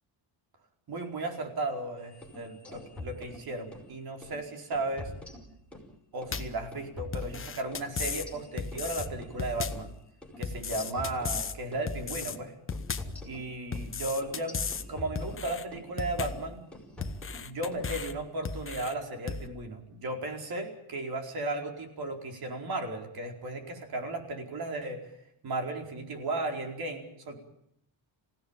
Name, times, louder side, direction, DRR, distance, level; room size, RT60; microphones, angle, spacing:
voice 1, 0.9-5.1 6.1-9.9 10.4-12.5 13.2-14.6 14.9-16.6 17.4-25.1 25.4-27.4, right 2 dB, 50° right, 4 dB, 4.8 m, -35 dB
sound 1, 2.1-3.9 4.2-4.4 4.7-5.9 6.2-9.9 10.2-10.4 10.7-11.9 12.2-12.4 12.7-15.9 16.2-16.5 16.7-17.9, left 1 dB, ahead, 5.6 m, -45 dB
sound 2, 6.3-6.6 7.1-8.3 8.6-9.1 9.4-9.9 10.4-11.6 11.9-12.4 12.7-13.2 13.7-14.9 15.2-15.6 16.0-16.5 17.0-18.1 18.5-18.9 19.3-19.5, left 5 dB, 25° left, 1.2 m, -35 dB
27.0 x 17.0 x 9.0 m, 0.76 s
wide cardioid pair, 175°, 48 cm